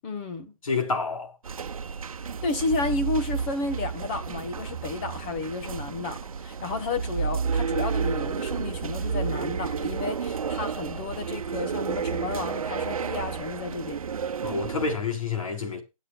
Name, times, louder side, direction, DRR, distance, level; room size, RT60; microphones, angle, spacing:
voice 1, 0.0-0.5 2.4-14.0, left 3 dB, 20° left, 1.3 m, -32 dB
voice 2, 0.6-1.3 14.4-15.8, left 4 dB, 70° left, 3.9 m, -28 dB
sound 1, 1.4-15.0, right 6 dB, 75° right, 1.0 m, -31 dB
22.0 x 8.2 x 2.4 m
hypercardioid pair, 170°, 18 cm